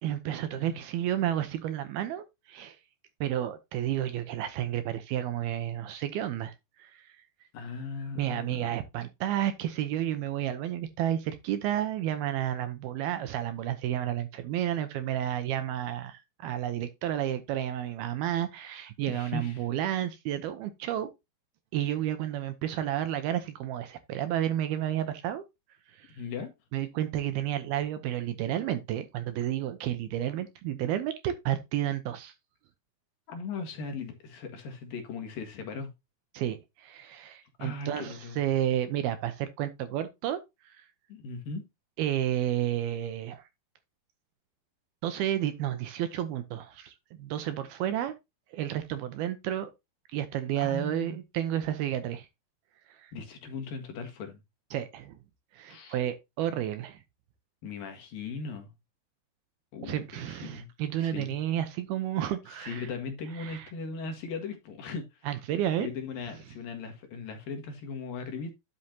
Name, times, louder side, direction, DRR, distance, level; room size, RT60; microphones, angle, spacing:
voice 1, 0.0-2.8 3.2-6.5 6.8-7.1 8.2-21.1 21.7-25.4 25.9-26.1 26.7-32.3 36.3-40.4 40.7-40.8 42.0-43.4 45.0-48.1 48.5-49.7 50.1-52.3 53.0-53.1 54.7-55.2 55.5-57.0 59.8-62.9 63.4-63.7 65.3-65.9, right 11 dB, 75° right, 2.5 m, -31 dB
voice 2, 7.5-8.7 19.1-19.7 26.2-26.5 33.3-35.9 37.6-38.4 41.1-41.6 50.5-51.2 53.1-54.4 55.7-56.0 57.6-58.7 59.7-60.7 61.0-61.4 62.5-65.3 65.8-68.5, left 4 dB, 60° left, 3.1 m, -38 dB
11.0 x 6.5 x 2.9 m
omnidirectional pair, 5.0 m